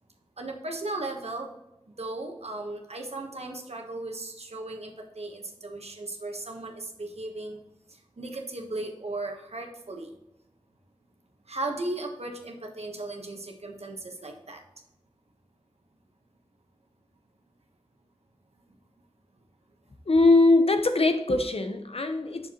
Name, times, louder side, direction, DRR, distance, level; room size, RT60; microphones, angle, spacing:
voice 1, 0.4-1.5 1.9-7.6 7.9-10.2 11.5-14.6, right 2 dB, 90° right, 1.2 m, -36 dB
voice 2, 20.1-22.5, left 2 dB, 70° left, 0.8 m, -21 dB
7.4 x 6.5 x 3.0 m
wide cardioid pair, 55°, 10 cm